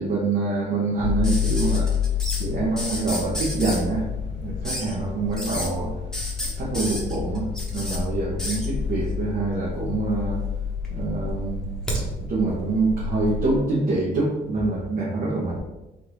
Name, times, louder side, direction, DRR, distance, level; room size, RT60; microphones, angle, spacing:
voice 1, 0.0-1.9 2.4-4.1 4.4-5.9 6.4-10.4 10.9-11.6 11.9-15.6, right 3 dB, 45° right, -5 dB, 1.1 m, -25 dB
sound 1, 1.0-13.6, left 6 dB, 65° left, 0.4 m, -29 dB
sound 2, 1.2-2.4 2.8-3.8 4.6-4.9 5.3-5.7 6.1-8.0 8.4-8.7 9.7-10.3 10.6-12.0 13.4-13.5, equal, 5° left, 1.0 m, -31 dB
3.8 x 2.6 x 4.6 m, 0.99 s
cardioid pair, 130°, 20 cm